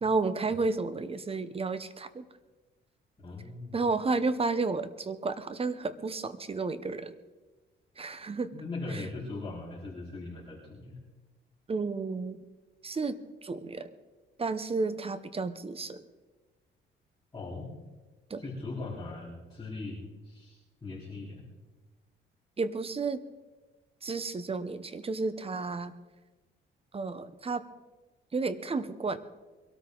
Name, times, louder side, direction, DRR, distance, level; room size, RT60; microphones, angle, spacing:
voice 1, 0.0-2.2 3.7-7.1 8.0-8.5 8.9-9.0 11.7-12.4 12.8-13.9 14.4-16.0 18.3-18.4 22.6-23.2 24.0-25.9 26.9-27.6 28.3-29.2, right 3 dB, 30° right, 13 dB, 1.0 m, -32 dB
voice 2, 3.2-3.8 8.5-11.0 17.3-17.7 18.4-21.4, left 2 dB, 20° left, -9 dB, 4.3 m, -40 dB
22.5 x 13.0 x 4.0 m, 1.2 s
cardioid pair, 90°, 20 cm